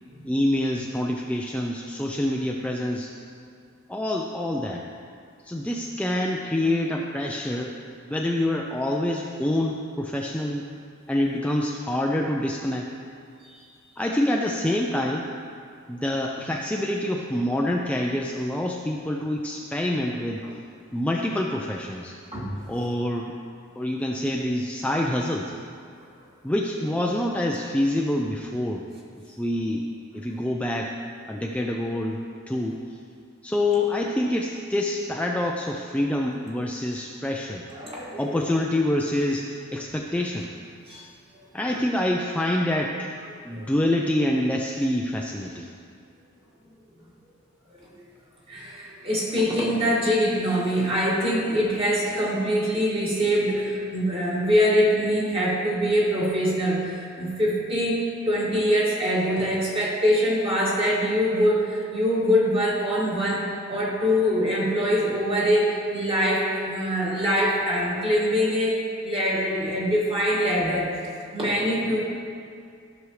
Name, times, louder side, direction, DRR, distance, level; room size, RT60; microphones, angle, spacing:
voice 1, 0.2-3.1 3.9-4.9 5.4-7.8 8.0-10.6 11.1-12.9 14.0-15.3 15.9-20.4 20.9-22.2 22.7-23.4 23.8-25.5 26.4-28.9 29.3-29.9 30.1-31.0 31.3-32.8 33.4-37.6 38.2-40.5 41.5-43.1 43.4-45.7, left 1 dB, 5° left, 0 dB, 0.4 m, -26 dB
voice 2, 37.7-38.4 40.9-41.1 43.5-43.6 47.7-47.8 48.5-70.9 71.3-72.0, equal, 30° right, -6 dB, 2.1 m, -24 dB
13.5 x 6.2 x 3.2 m, 2.3 s
head